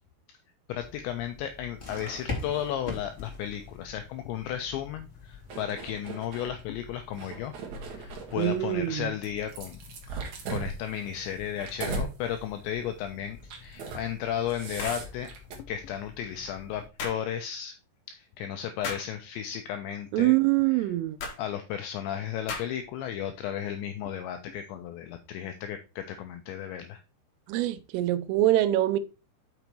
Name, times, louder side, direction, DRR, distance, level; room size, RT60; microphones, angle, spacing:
voice 1, 0.7-7.5 7.9-9.8 10.1-15.3 15.6-17.8 18.1-20.3 21.4-27.0, left 10 dB, 85° left, 2.5 m, -34 dB
sound 1, 0.8-16.9, left 3 dB, 35° left, 1.0 m, -45 dB
sound 2, 5.5-6.5 7.1-8.6 9.2-12.1 12.5-12.8 13.4-14.1 14.3-15.6, right 4 dB, 65° right, 1.9 m, -38 dB
voice 2, 8.3-9.1 20.1-21.2 27.5-29.0, right 15 dB, 85° right, 3.1 m, -24 dB
sound 3, 14.8-15.1 17.0-17.2 18.8-19.1 21.2-21.4 22.5-22.9, left 4 dB, 60° left, 1.9 m, -35 dB
6.8 x 6.0 x 4.5 m
omnidirectional pair, 5.9 m